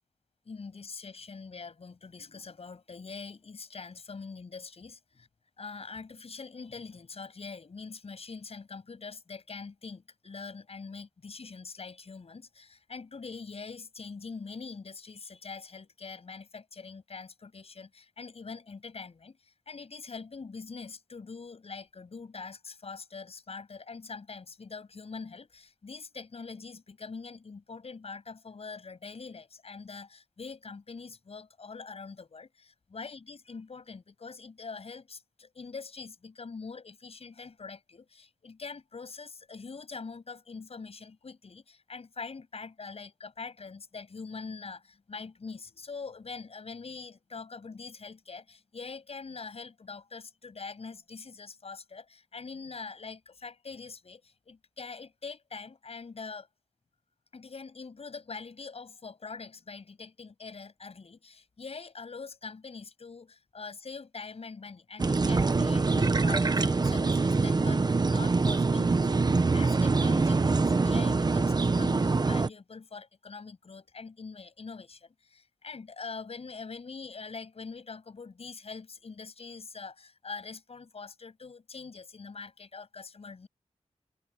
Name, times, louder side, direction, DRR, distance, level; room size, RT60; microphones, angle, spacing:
voice 1, 0.5-5.3 5.6-19.4 19.7-56.5 57.3-83.5, left 4 dB, 60° left, 7.8 m, -44 dB
sound 1, 65.0-72.5, right 3 dB, 35° right, 0.8 m, -24 dB
wide cardioid pair, 110°, 12 cm